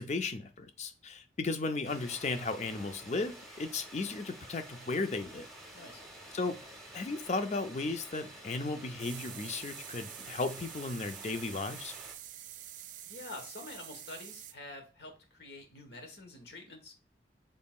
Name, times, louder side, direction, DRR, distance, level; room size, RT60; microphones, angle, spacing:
voice 1, 0.0-5.5 6.3-6.6 6.9-11.9, left 3 dB, 40° left, 0.4 m, -35 dB
sound 1, 1.8-12.1, right 1 dB, ahead, 0.9 m, -50 dB
voice 2, 5.7-6.0 13.0-16.9, left 2 dB, 70° left, 1.2 m, -47 dB
sound 2, 9.0-14.5, right 11 dB, 45° right, 0.3 m, -47 dB
5.4 x 4.2 x 2.3 m
head